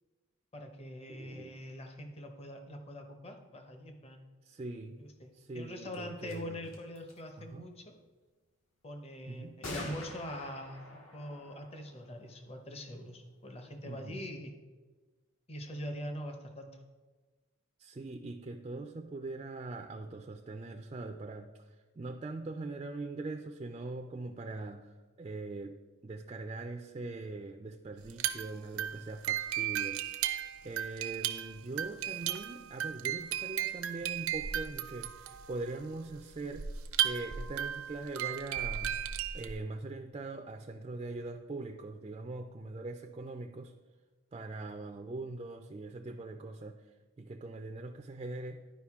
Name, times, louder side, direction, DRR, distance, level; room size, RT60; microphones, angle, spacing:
voice 1, 0.5-4.3 5.0-7.9 8.8-14.5 15.5-16.8, equal, 30° left, 5 dB, 0.7 m, -43 dB
voice 2, 1.1-1.6 4.4-5.0 5.3-6.6 7.4-7.7 9.3-9.6 13.8-14.3 17.8-21.5 22.0-30.0 30.6-36.7 37.0-39.0 39.3-43.7 44.3-46.8 47.2-48.7, right 2 dB, 25° right, 4 dB, 0.3 m, -42 dB
sound 1, 5.9-6.0 6.2-6.4 6.6-7.2 9.6-13.0, left 1 dB, 70° left, 1.6 m, -46 dB
sound 2, 28.0-39.6, right 11 dB, 80° right, 0.5 m, -35 dB
11.5 x 5.0 x 3.5 m, 1.3 s
head